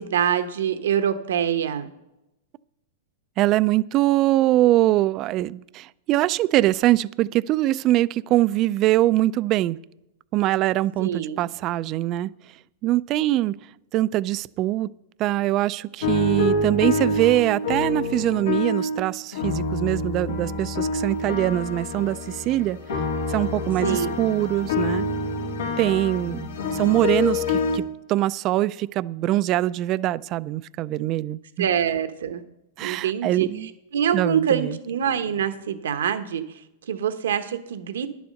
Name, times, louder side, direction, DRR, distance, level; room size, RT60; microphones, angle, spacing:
voice 1, 0.0-1.9 11.0-11.4 23.8-24.1 31.6-32.4 32.8-33.5 33.9-36.4 36.9-38.1, right 8 dB, 80° right, 9 dB, 1.0 m, -24 dB
voice 2, 3.4-9.8 10.3-12.3 12.8-13.6 13.9-14.9 15.2-22.8 23.3-25.1 25.8-31.7 32.8-33.7 34.1-34.8, right 15 dB, 35° right, 18 dB, 0.3 m, -23 dB
sound 1, 16.0-19.0 19.3-27.8, left 2 dB, 85° left, 2.0 m, -27 dB
10.0 x 7.0 x 6.4 m, 0.92 s
hypercardioid pair, 140°, 0 cm